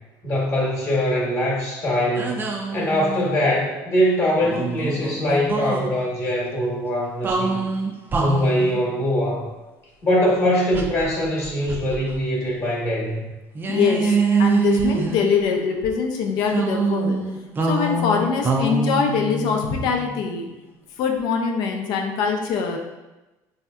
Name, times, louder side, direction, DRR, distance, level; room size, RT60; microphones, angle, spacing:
voice 1, 0.2-7.7 8.2-9.4 10.0-13.3, equal, 35° left, -4 dB, 1.0 m, -22 dB
sound 1, 2.1-3.5 4.4-5.9 7.2-8.8 10.7-12.2 12.5-12.6 13.5-15.7 16.5-20.2, right 3 dB, 25° right, 0.4 m, -25 dB
voice 2, 13.7-17.2 17.6-20.5 21.0-22.8, left 5 dB, 70° left, 2 dB, 0.5 m, -23 dB
3.3 x 2.7 x 2.2 m, 1.1 s
cardioid pair, 115°, 8 cm